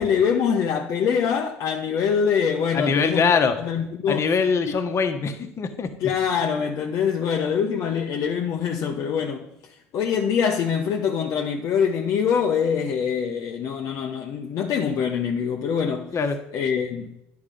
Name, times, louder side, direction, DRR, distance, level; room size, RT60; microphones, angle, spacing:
voice 1, 0.0-4.3 4.6-4.8 6.0-9.5 9.9-16.1 16.5-17.1, left 7 dB, 55° left, 0.8 m, -24 dB
voice 2, 2.7-3.5 4.1-5.9 16.1-16.4, left 5 dB, 40° left, 1.2 m, -22 dB
9.9 x 4.8 x 5.4 m
hypercardioid pair, 70°, 7 cm